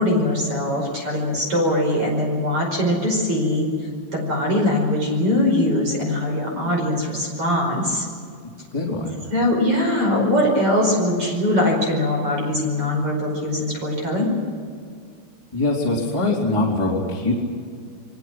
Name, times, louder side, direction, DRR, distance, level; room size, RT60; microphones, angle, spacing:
voice 1, 0.0-3.7 4.1-8.1 9.3-14.3, left 1 dB, 30° right, 0 dB, 5.7 m, -21 dB
voice 2, 8.7-9.3 15.5-17.3, left 2 dB, 5° left, -4 dB, 3.3 m, -23 dB
28.0 x 23.0 x 6.2 m, 2.2 s
omnidirectional pair, 5.1 m